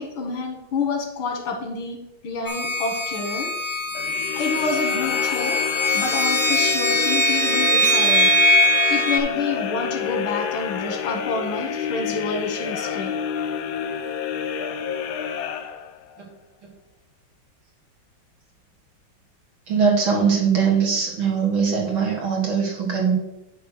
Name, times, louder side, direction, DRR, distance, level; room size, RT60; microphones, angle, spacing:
voice 1, 0.0-3.5 4.3-5.6 5.9-8.4 8.9-13.2, left 4 dB, 85° left, 3 dB, 2.2 m, -28 dB
sound 1, 2.5-9.2, equal, 35° left, 0.6 m, -21 dB
sound 2, 3.9-16.2, left 8 dB, 70° left, 1.0 m, -29 dB
voice 2, 19.7-23.1, right 6 dB, 80° right, -2 dB, 2.7 m, -21 dB
9.5 x 3.2 x 6.4 m, 0.90 s
omnidirectional pair, 2.2 m